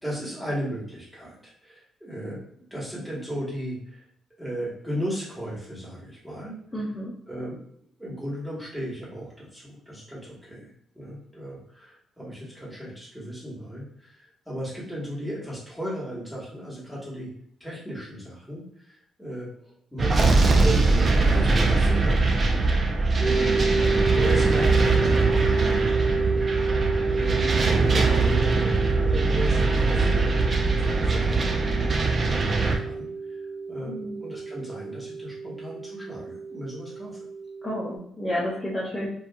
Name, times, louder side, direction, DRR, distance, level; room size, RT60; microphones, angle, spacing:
voice 1, 0.0-2.4 2.7-4.0 4.4-6.5 7.3-7.6 8.0-17.3 17.6-22.6 23.1-23.6 24.1-25.9 26.2-26.4 27.0-33.4 33.7-37.2, equal, ahead, -6 dB, 1.1 m, -36 dB
voice 2, 6.7-7.1 23.5-23.8 33.9-34.2 37.6-39.1, equal, 15° left, -7 dB, 0.6 m, -31 dB
sound 1, 20.0-32.8, right 3 dB, 35° right, 0.4 m, -22 dB
sound 2, 23.2-38.0, right 4 dB, 55° left, 0.8 m, -29 dB
2.8 x 2.4 x 2.2 m, 0.68 s
cardioid pair, 110°, 0 cm